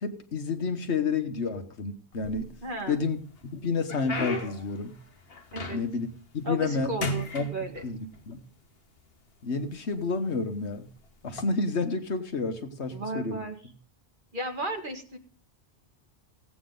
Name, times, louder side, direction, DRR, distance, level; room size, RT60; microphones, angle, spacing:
voice 1, 0.0-2.5 2.9-3.2 3.5-4.9 5.7-6.1 6.3-6.9 7.3-7.5 7.8-8.0 8.3-8.4 9.4-10.9 11.2-13.4, left 4 dB, 75° left, 8 dB, 1.5 m, -30 dB
sound 1, 2.1-2.9 3.4-6.1 6.5-6.7 7.0-8.2 9.0-9.1 9.8-10.1 11.2-11.4, left 2 dB, 60° left, 1.6 m, -35 dB
voice 2, 2.6-3.0 5.5-5.8 6.4-7.8 12.9-13.6 14.3-15.2, right 1 dB, 45° right, 3 dB, 2.2 m, -34 dB
17.0 x 8.6 x 3.9 m, 0.43 s
omnidirectional pair, 1.1 m